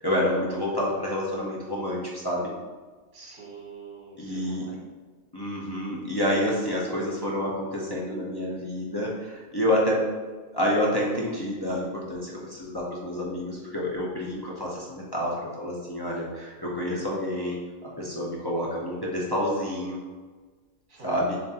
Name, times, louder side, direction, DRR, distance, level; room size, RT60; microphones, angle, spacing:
voice 1, 0.0-2.5 4.2-4.7 5.3-10.1 10.5-20.0 21.0-21.4, left 1 dB, 35° left, -5 dB, 0.4 m, -28 dB
voice 2, 3.1-4.8 20.9-21.2, right 4 dB, 55° right, -5 dB, 1.6 m, -45 dB
6.9 x 2.6 x 2.8 m, 1.4 s
omnidirectional pair, 1.5 m